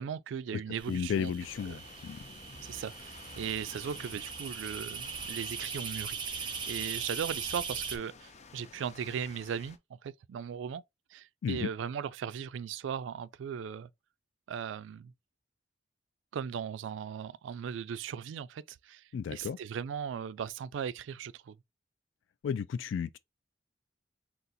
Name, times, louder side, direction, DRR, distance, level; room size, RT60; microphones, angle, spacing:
voice 1, 0.0-1.3 1.7-1.8 2.6-10.8 11.1-13.9 14.5-15.1 16.3-21.6, right 7 dB, 80° right, 0.3 m, -38 dB
sound 1, 0.8-8.0, right 5 dB, 25° right, 0.5 m, -40 dB
voice 2, 0.9-2.2 11.4-11.7 19.1-19.6 22.4-23.2, left 7 dB, 90° left, 0.3 m, -33 dB
sound 2, 1.4-9.8, left 4 dB, 35° left, 0.5 m, -52 dB
3.9 x 2.4 x 4.0 m
head